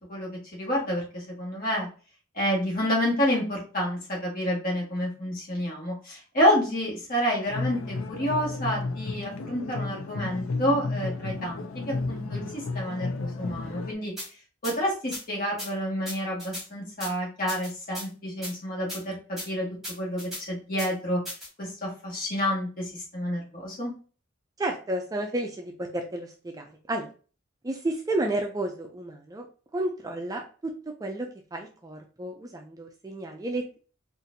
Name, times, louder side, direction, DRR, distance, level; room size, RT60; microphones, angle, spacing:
voice 1, 0.6-1.9 2.3-14.1 14.6-19.1 19.4-19.7 20.0-20.2 20.5-21.2 21.6-23.9, equal, 45° left, -3 dB, 1.6 m, -29 dB
sound 1, 7.5-13.9, left 3 dB, 80° left, 0.5 m, -33 dB
sound 2, 14.2-14.3 14.6-14.7 15.1-15.2 15.6-15.7 16.0-16.6 17.0-17.1 17.5-18.1 18.4-18.5 18.9-19.0 19.4-19.5 19.8-20.4 20.8-20.9 21.2-21.5, equal, ahead, 1.6 m, -36 dB
voice 2, 24.6-27.1 27.6-29.5 29.7-30.4 30.9-33.8, right 1 dB, 15° right, 3 dB, 0.3 m, -32 dB
4.0 x 2.5 x 2.6 m, 0.37 s
head